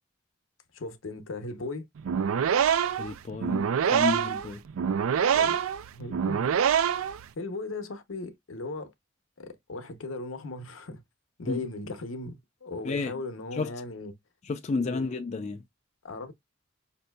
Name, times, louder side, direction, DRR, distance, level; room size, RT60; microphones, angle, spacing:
voice 1, 0.7-1.9 5.3-5.6 5.9-6.5 7.1-8.9 9.4-11.0 11.4-14.1 14.8-15.0 16.0-16.3, left 2 dB, 80° left, 0.7 m, -37 dB
sound 1, 2.0-7.2, right 8 dB, 90° right, 0.4 m, -25 dB
voice 2, 3.0-4.6 11.5-11.6 12.8-13.2 13.5-13.7 14.4-15.6, left 3 dB, 35° left, 0.3 m, -31 dB
5.2 x 2.6 x 2.2 m
head